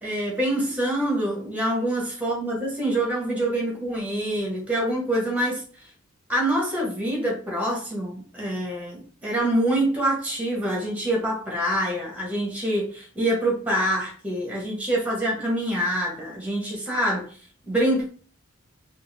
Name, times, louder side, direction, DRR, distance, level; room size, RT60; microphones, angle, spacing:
voice 1, 0.0-5.6 6.3-17.3 17.6-18.1, right 1 dB, 5° right, -2 dB, 1.1 m, -25 dB
3.5 x 2.5 x 3.2 m, 0.43 s
head